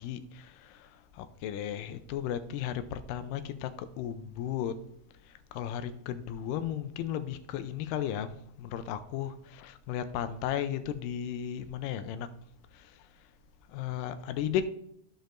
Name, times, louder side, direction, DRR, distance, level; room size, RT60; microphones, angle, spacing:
voice 1, 0.0-4.8 5.3-12.3 12.7-13.0 13.7-14.6, left 10 dB, 90° left, 2.3 m, -35 dB
14.0 x 5.3 x 2.5 m
omnidirectional pair, 3.8 m